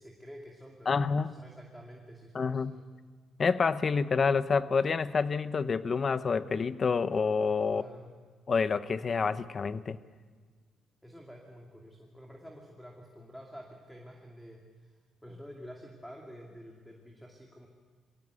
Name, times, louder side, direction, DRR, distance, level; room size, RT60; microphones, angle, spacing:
voice 1, 0.0-2.8 7.7-8.1 11.0-17.7, equal, ahead, 0 dB, 2.5 m, -49 dB
voice 2, 0.9-1.3 2.3-2.7 3.4-7.8 8.5-10.0, left 5 dB, 40° left, 14 dB, 0.8 m, -28 dB
22.0 x 17.0 x 8.2 m, 1.5 s
cardioid pair, 90°, 0 cm